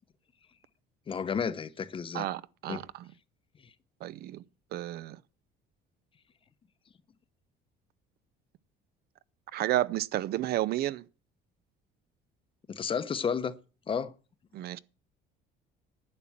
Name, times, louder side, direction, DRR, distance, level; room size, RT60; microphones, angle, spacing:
voice 1, 1.1-2.3 2.7-2.8 3.6-3.7 12.7-13.5 13.9-14.1, left 6 dB, 30° left, 0.8 m, -32 dB
voice 2, 2.1-3.0 4.0-4.4 4.7-5.2 9.5-11.0 14.5-14.8, right 14 dB, 60° right, 0.5 m, -31 dB
11.0 x 5.9 x 8.6 m
cardioid pair, 135°, 19 cm